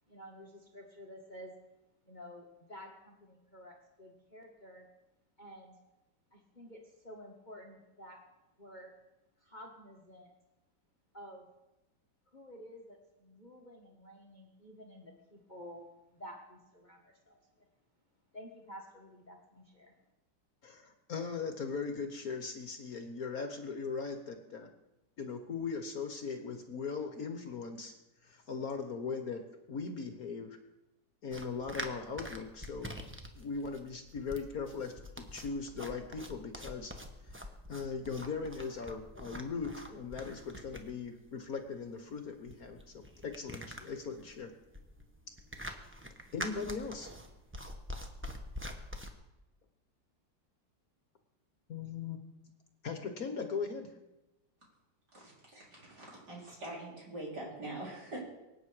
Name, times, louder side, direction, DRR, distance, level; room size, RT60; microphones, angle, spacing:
voice 1, 0.1-1.6 2.0-4.9 5.4-5.8 6.3-8.2 8.6-8.9 9.4-10.3 11.1-11.5 12.3-17.7 18.3-19.9, equal, 25° left, 1 dB, 1.4 m, -51 dB
voice 2, 20.6-24.7 25.2-27.9 28.2-30.6 31.2-32.9 33.3-36.9 37.3-44.5 46.3-47.1 51.7-52.2 52.8-53.9, left 5 dB, 55° left, 7 dB, 1.5 m, -39 dB
sound 1, 31.3-49.1, equal, 10° right, 0.9 m, -45 dB
voice 3, 55.1-58.2, right 2 dB, 55° right, -4 dB, 5.1 m, -44 dB
24.0 x 8.8 x 4.9 m, 0.98 s
omnidirectional pair, 2.0 m